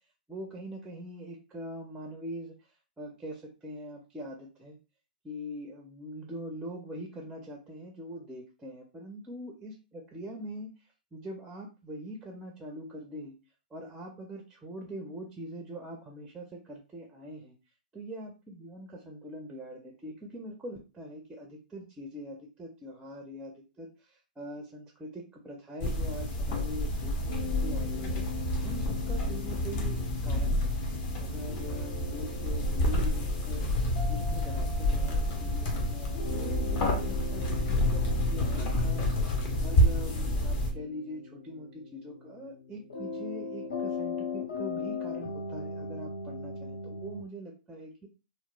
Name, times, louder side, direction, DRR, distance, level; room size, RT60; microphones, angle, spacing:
voice 1, 0.3-2.5 3.0-4.8 5.2-10.7 11.1-13.4 13.7-17.5 17.9-28.2 28.6-30.8 31.2-33.7 34.1-39.1 39.6-48.1, equal, 10° right, 2 dB, 0.4 m, -43 dB
sound 1, 25.8-40.7, left 1 dB, 35° left, 0.6 m, -29 dB
sound 2, 27.3-47.2, left 4 dB, 60° left, 0.8 m, -40 dB
2.9 x 2.0 x 2.2 m, 0.31 s
figure-of-eight pair, 115°, 5 cm